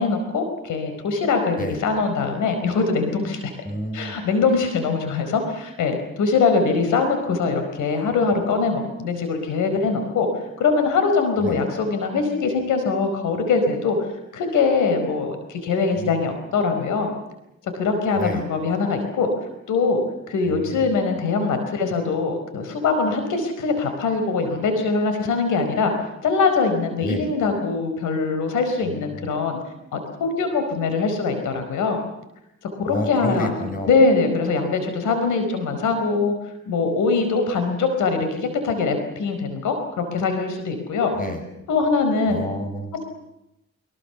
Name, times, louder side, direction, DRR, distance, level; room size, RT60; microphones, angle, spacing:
voice 1, 0.0-3.5 3.9-10.3 10.6-14.0 14.3-17.1 17.7-19.3 19.7-20.0 20.3-25.9 26.2-29.6 29.9-32.0 32.8-33.5 33.9-36.3 36.7-41.1 41.7-42.4, left 4 dB, 80° left, 7 dB, 4.7 m, -22 dB
voice 2, 3.6-4.2 11.4-11.6 16.0-16.1 18.1-18.4 20.4-21.0 27.0-27.3 28.8-29.3 32.9-33.9 41.1-41.5 42.3-42.9, equal, 30° left, 7 dB, 6.9 m, -30 dB
24.5 x 23.5 x 7.1 m, 0.88 s
cardioid pair, 90°, 30 cm